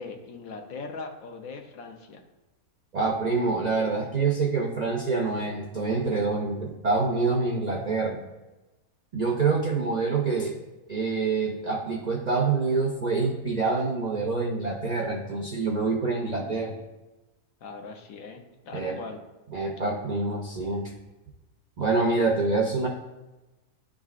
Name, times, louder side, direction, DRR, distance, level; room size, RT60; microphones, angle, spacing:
voice 1, 0.0-2.2 17.6-19.2, left 4 dB, 75° left, 4 dB, 1.1 m, -40 dB
voice 2, 2.9-8.2 9.1-10.5 10.9-16.7 18.7-19.0 19.5-20.9 21.8-22.9, right 4 dB, 55° right, 0 dB, 0.4 m, -26 dB
11.0 x 3.7 x 2.4 m, 1.1 s
omnidirectional pair, 1.5 m